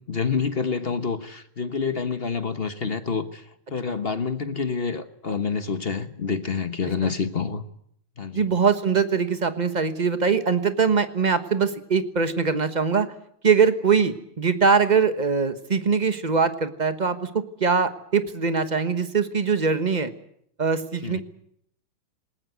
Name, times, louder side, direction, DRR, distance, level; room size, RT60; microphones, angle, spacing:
voice 1, 0.1-3.4 3.7-7.6 8.2-8.5 21.0-21.2, left 5 dB, 35° left, 10 dB, 1.0 m, -27 dB
voice 2, 8.3-13.1 13.4-20.1 20.6-21.2, right 5 dB, 25° right, 10 dB, 1.0 m, -22 dB
20.5 x 19.5 x 9.3 m, 0.70 s
omnidirectional pair, 2.3 m